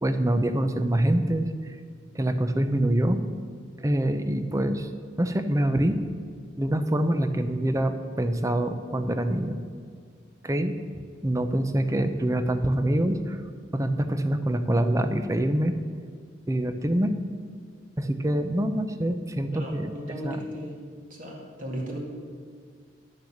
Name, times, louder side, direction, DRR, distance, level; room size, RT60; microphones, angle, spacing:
voice 1, 0.0-1.5 2.1-3.2 3.8-4.9 5.2-6.0 6.6-9.6 10.4-10.7 11.2-13.4 13.7-15.7 16.5-17.2 18.0-19.9 20.2-20.4, right 1 dB, 20° right, 9 dB, 0.6 m, -25 dB
voice 2, 19.5-20.8 21.1-22.0, equal, 50° right, -1 dB, 2.2 m, -36 dB
11.5 x 6.7 x 7.3 m, 2.1 s
head